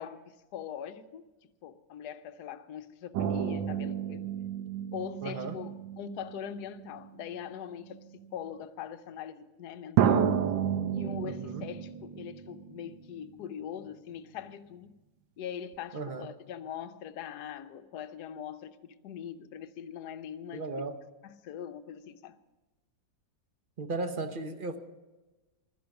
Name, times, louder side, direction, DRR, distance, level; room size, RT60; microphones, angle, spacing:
voice 1, 0.0-4.3 4.9-10.4 10.9-15.0 15.4-20.8 21.2-22.4, left 9 dB, 65° left, 1.2 m, -42 dB
sound 1, 3.1-7.1 8.0-8.1 10.0-13.3 13.6-13.7, right 9 dB, 80° right, 1.6 m, -31 dB
voice 2, 5.2-5.6 11.2-11.6 15.9-16.3 20.5-20.9 23.8-24.8, right 3 dB, 45° right, 0.6 m, -36 dB
15.5 x 12.0 x 5.9 m
omnidirectional pair, 2.0 m